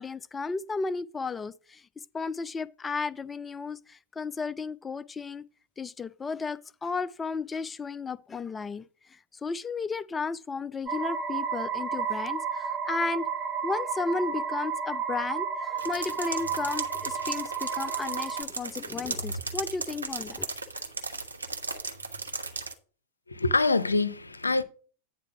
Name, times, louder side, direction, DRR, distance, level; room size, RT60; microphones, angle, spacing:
voice 1, 0.0-1.8 2.1-5.5 5.8-13.3 13.6-20.5, left 4 dB, 15° left, 0.3 m, -34 dB
sound 1, 10.9-18.4, right 6 dB, 15° right, 1.1 m, -32 dB
sound 2, 15.8-22.7, right 3 dB, 80° right, 0.8 m, -36 dB
voice 2, 23.3-24.6, left 3 dB, 80° left, 0.6 m, -25 dB
9.3 x 4.0 x 5.9 m
figure-of-eight pair, 90°, 0 cm